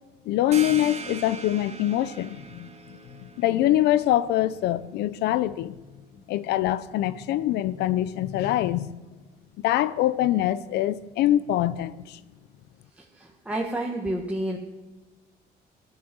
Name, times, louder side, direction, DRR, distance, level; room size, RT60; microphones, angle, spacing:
voice 1, 0.3-2.7 3.4-5.7 6.3-8.9 9.6-12.2, left 13 dB, 80° left, 0.7 m, -24 dB
sound 1, 0.5-5.9, right 5 dB, 40° right, 2.0 m, -42 dB
voice 2, 13.0-14.6, right 1 dB, 5° right, 1.7 m, -30 dB
18.5 x 11.0 x 6.2 m
cardioid pair, 110°, 17 cm